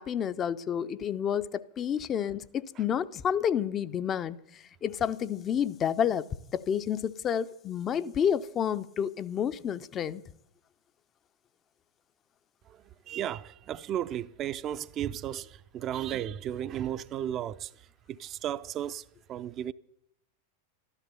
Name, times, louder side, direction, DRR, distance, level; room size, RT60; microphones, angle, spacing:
voice 1, 0.0-6.3 6.5-10.2, left 8 dB, 25° left, 0.5 m, -30 dB
voice 2, 12.7-17.7 18.1-19.7, right 10 dB, 30° right, 0.5 m, -34 dB
13.5 x 12.5 x 6.9 m
figure-of-eight pair, 90°, 0 cm